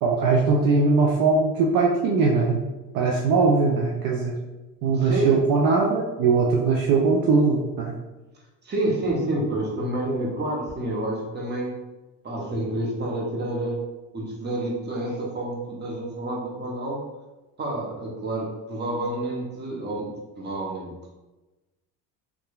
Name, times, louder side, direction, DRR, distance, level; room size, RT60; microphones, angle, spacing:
voice 1, 0.0-2.6 2.9-4.3 4.8-7.9, right 4 dB, 55° right, -2 dB, 0.6 m, -20 dB
voice 2, 4.9-5.4 8.6-11.7 12.2-13.9 14.1-17.0 17.6-21.1, right 1 dB, 25° right, -2 dB, 0.9 m, -29 dB
2.7 x 2.4 x 2.3 m, 1.1 s
supercardioid pair, 80°, 42 cm